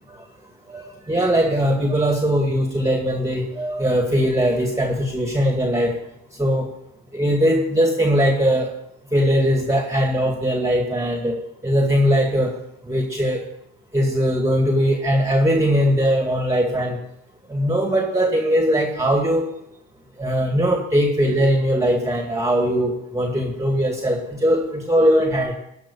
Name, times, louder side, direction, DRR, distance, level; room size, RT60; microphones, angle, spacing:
voice 1, 0.7-5.9 6.4-6.7 7.1-8.7 9.1-11.4 11.6-12.5 12.9-13.4 13.9-17.0 17.5-19.5 20.2-25.5, equal, 10° right, 2 dB, 2.2 m, -20 dB
13.0 x 5.9 x 8.7 m, 0.82 s
supercardioid pair, 80°, 31 cm